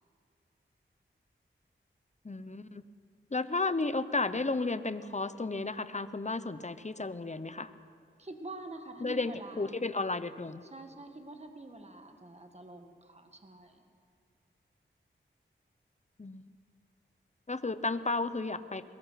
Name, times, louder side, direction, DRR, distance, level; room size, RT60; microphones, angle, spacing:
voice 1, 2.2-2.8 3.3-7.7 9.0-10.6 16.2-16.5 17.5-18.8, left 3 dB, 35° left, 13 dB, 0.9 m, -33 dB
voice 2, 8.2-9.8 10.6-13.8, right 2 dB, 30° right, 5 dB, 1.9 m, -46 dB
22.0 x 20.0 x 5.9 m, 2.2 s
cardioid pair, 40°, 21 cm